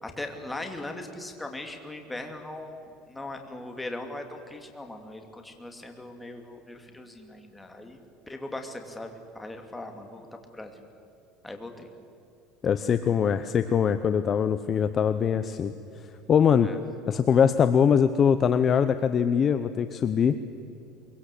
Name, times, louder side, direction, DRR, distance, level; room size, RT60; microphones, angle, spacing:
voice 1, 0.0-8.0 8.3-10.3 10.5-10.7 11.4-11.9 16.6-16.8, left 2 dB, 10° left, 5 dB, 2.5 m, -39 dB
voice 2, 12.6-15.7 16.3-16.7 17.1-20.4, left 7 dB, 30° left, 11 dB, 0.8 m, -22 dB
23.5 x 23.0 x 8.4 m, 2.8 s
cardioid pair, 145°, 0 cm